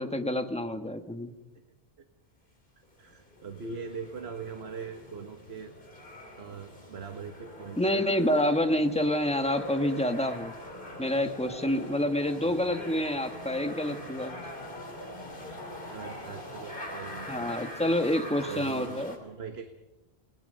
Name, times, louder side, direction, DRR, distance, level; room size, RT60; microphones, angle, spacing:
voice 1, 0.0-1.3 7.8-10.5 11.0-14.5 17.3-19.1, left 1 dB, 5° left, 6 dB, 1.4 m, -28 dB
voice 2, 3.0-6.0 6.4-8.1 15.9-17.5 18.5-19.7, right 5 dB, 80° right, 7 dB, 1.6 m, -41 dB
sound 1, 3.1-19.2, left 1 dB, 55° left, 3.4 m, -43 dB
30.0 x 19.5 x 5.5 m, 1.0 s
omnidirectional pair, 1.1 m